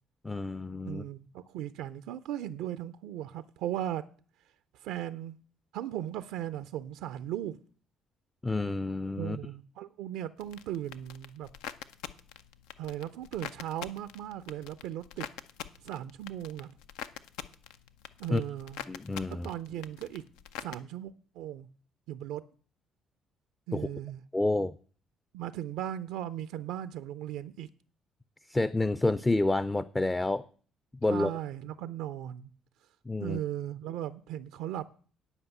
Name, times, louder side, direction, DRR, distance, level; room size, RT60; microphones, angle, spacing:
voice 1, 0.2-1.0 8.4-9.4 18.3-18.4 18.9-19.5 23.7-23.9 24.3-24.7 28.5-30.4 31.0-31.3 33.1-33.4, left 2 dB, 20° left, 0.5 m, -29 dB
voice 2, 0.9-4.0 4.7-5.4 5.7-7.6 9.2-11.5 12.8-15.3 15.8-16.7 18.2-18.8 19.3-20.2 20.6-21.7 22.1-22.4 23.7-24.2 25.3-27.7 31.1-32.5 33.2-34.9, right 12 dB, 80° right, 0.4 m, -37 dB
sound 1, 10.4-20.8, left 10 dB, 80° left, 0.5 m, -45 dB
9.9 x 5.2 x 8.1 m
hypercardioid pair, 55°, 0 cm